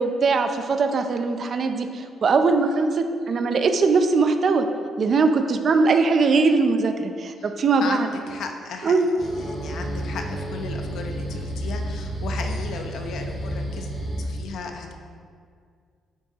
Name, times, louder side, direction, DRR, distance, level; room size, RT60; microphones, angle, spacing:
voice 1, 0.0-4.7 5.0-8.1 8.8-9.1, right 4 dB, 45° right, 7 dB, 0.5 m, -21 dB
voice 2, 7.8-13.9 14.2-14.9, left 4 dB, 70° left, 4 dB, 0.8 m, -35 dB
sound 1, 9.2-14.2, right 1 dB, 20° right, 2.0 m, -31 dB
9.3 x 6.1 x 2.9 m, 2.1 s
cardioid pair, 115°, 0 cm